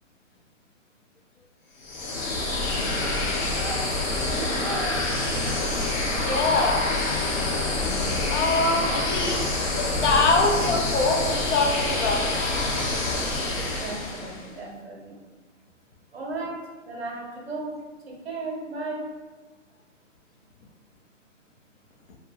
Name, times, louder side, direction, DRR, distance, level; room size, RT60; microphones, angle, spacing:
sound 1, 1.8-14.5, left 2 dB, 85° left, 0.9 m, -26 dB
voice 1, 3.5-3.9 4.3-5.0 8.6-8.9 13.8-15.2 16.1-17.8 18.1-19.1, right 2 dB, 55° right, -2 dB, 0.7 m, -35 dB
voice 2, 6.2-6.9 8.3-12.2, left 3 dB, 65° left, 1 dB, 0.6 m, -24 dB
2.7 x 2.1 x 2.5 m, 1.3 s
hypercardioid pair, 175°, 38 cm